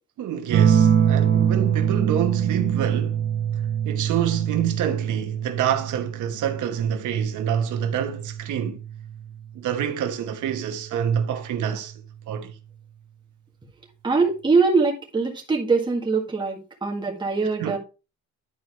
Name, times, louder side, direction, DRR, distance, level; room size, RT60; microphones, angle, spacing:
voice 1, 0.2-3.2 3.8-8.8 9.5-11.9 12.3-12.5 17.6-17.8, right 9 dB, 90° right, 1.1 m, -27 dB
sound 1, 0.5-9.6 11.0-11.6, right 8 dB, 45° right, 1.1 m, -24 dB
voice 2, 14.0-17.8, right 4 dB, 15° right, 1.7 m, -22 dB
11.0 x 4.7 x 3.1 m
cardioid pair, 155°, 29 cm